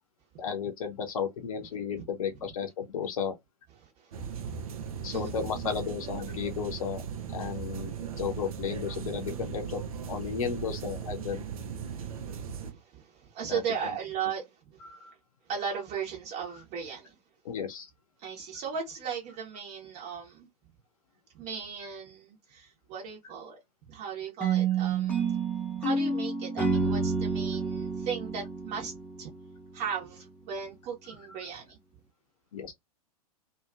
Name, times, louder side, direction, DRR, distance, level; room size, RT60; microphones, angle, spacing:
voice 1, 0.4-3.4 5.0-7.0 7.3-9.8 10.1-11.4 13.5-13.6 14.8-15.1 16.5-16.6 17.4-17.9 31.1-31.5 32.5-32.7, left 7 dB, 60° left, 0.7 m, -34 dB
voice 2, 3.8-5.3 7.4-7.6 11.8-14.5 15.5-17.2 18.2-20.5 21.3-23.6 23.9-25.3 25.8-28.9 29.2-29.3 29.7-31.8, right 7 dB, 35° right, 1.1 m, -37 dB
sound 1, 4.1-12.7, right 7 dB, 65° right, 0.6 m, -38 dB
sound 2, 24.4-29.5, right 4 dB, 5° left, 0.7 m, -29 dB
2.8 x 2.3 x 2.4 m
figure-of-eight pair, 100°, 20 cm